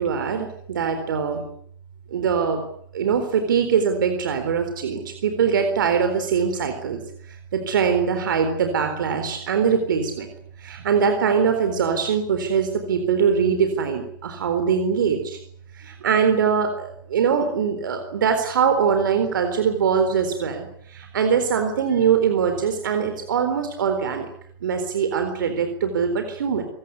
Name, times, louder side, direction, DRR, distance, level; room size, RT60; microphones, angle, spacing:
voice 1, 0.0-1.4 2.1-2.6 2.9-7.0 7.3-10.3 10.6-15.4 15.7-24.3 24.6-26.7, right 6 dB, 70° right, 7 dB, 4.0 m, -22 dB
26.0 x 17.5 x 9.6 m, 0.67 s
hypercardioid pair, 115°, 11 cm